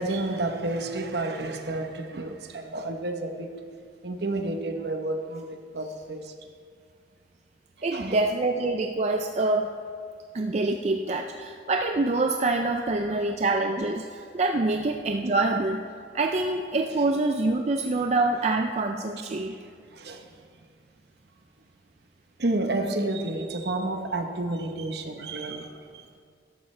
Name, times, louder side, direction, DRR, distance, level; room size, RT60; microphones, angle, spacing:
voice 1, 0.0-3.5 4.0-6.3 7.9-8.2 12.9-13.4 19.9-20.3 22.4-26.0, right 2 dB, 60° right, 5 dB, 1.0 m, -30 dB
voice 2, 7.8-9.7 10.3-15.8 16.1-19.6, right 2 dB, 35° right, 4 dB, 0.4 m, -26 dB
13.5 x 11.5 x 3.2 m, 2.2 s
head